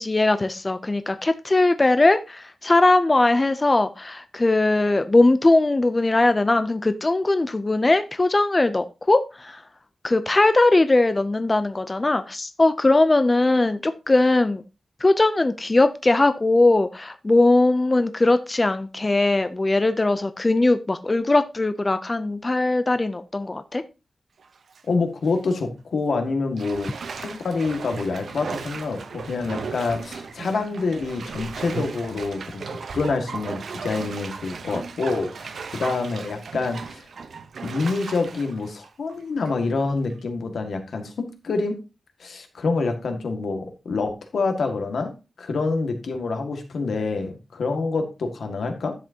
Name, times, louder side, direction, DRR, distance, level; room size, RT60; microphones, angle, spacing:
voice 1, 0.0-9.6 10.0-14.6 15.0-23.8, left 2 dB, 20° left, 0.5 m, -20 dB
Bathtub (filling or washing), 24.4-24.8 25.3-25.4 26.6-39.7 40.1-40.2, right 5 dB, 75° right, 0.8 m, -36 dB
voice 2, 24.9-37.1 37.6-41.7 42.2-45.1 45.4-48.9, left 3 dB, 85° left, 1.9 m, -27 dB
11.0 x 7.6 x 2.8 m
wide cardioid pair, 165°, 0 cm